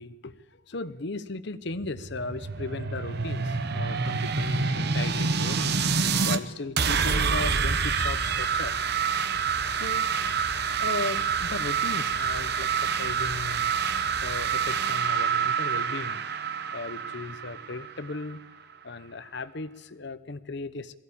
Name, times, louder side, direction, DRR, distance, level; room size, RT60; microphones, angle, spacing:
voice 1, 0.0-5.8 6.2-8.7 9.7-10.1 10.8-13.7 14.2-16.2 16.7-18.4 18.8-21.0, left 3 dB, 60° left, 13 dB, 0.9 m, -36 dB
sound 1, 1.7-6.4 6.8-18.3, right 5 dB, 55° right, 1.0 m, -27 dB
22.0 x 15.0 x 8.5 m, 1.0 s
head